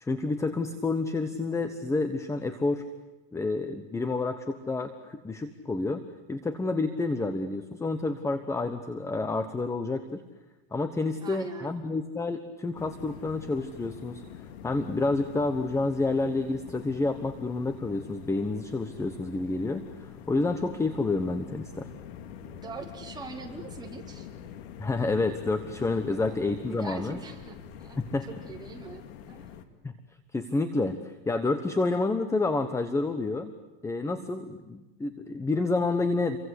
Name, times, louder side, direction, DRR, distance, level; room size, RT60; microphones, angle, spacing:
voice 1, 0.0-2.9 3.3-6.0 6.3-10.2 10.7-14.2 14.6-21.9 24.8-27.2 28.0-28.3 29.8-29.9 30.3-33.5 33.8-36.4, left 3 dB, 10° left, 10 dB, 1.2 m, -29 dB
voice 2, 11.2-11.8 22.4-24.3 26.1-26.4 26.7-28.0 28.3-29.5, right 4 dB, 15° right, 0 dB, 4.2 m, -43 dB
sound 1, 12.7-29.7, left 9 dB, 80° left, 2.4 m, -45 dB
29.5 x 24.0 x 8.3 m, 1.1 s
supercardioid pair, 145°, 31 cm